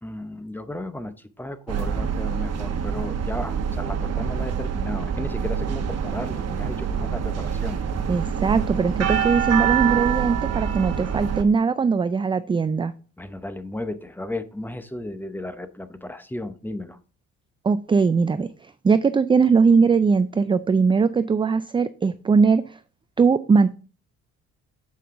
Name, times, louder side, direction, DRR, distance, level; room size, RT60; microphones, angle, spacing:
voice 1, 0.0-7.8 13.2-17.0, left 1 dB, 5° left, 11 dB, 0.8 m, -34 dB
sound 1, 1.7-11.4, right 7 dB, 55° right, 1.0 m, -26 dB
voice 2, 8.1-12.9 17.6-18.5 18.8-22.8 23.2-23.7, right 5 dB, 20° right, 12 dB, 0.3 m, -20 dB
7.7 x 5.4 x 3.7 m, 0.38 s
cardioid pair, 90°, 30 cm